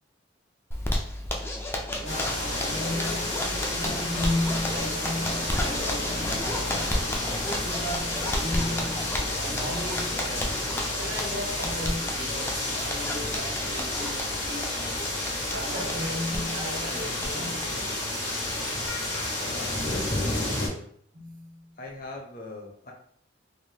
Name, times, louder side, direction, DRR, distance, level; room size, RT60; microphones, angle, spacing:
Zipper (clothing), 0.7-18.9 19.2-19.3 19.6-19.7 20.0-20.5, left 1 dB, 15° left, 0.3 m, -33 dB
voice 1, 2.0-15.1 15.5-17.7 21.1-21.8, left 1 dB, 75° right, 1.2 m, -35 dB
sound 1, 2.1-20.7, left 1 dB, 80° left, 1.3 m, -31 dB
voice 2, 19.5-20.9 21.8-22.9, left 2 dB, 50° left, 0.8 m, -41 dB
3.4 x 2.1 x 2.8 m
head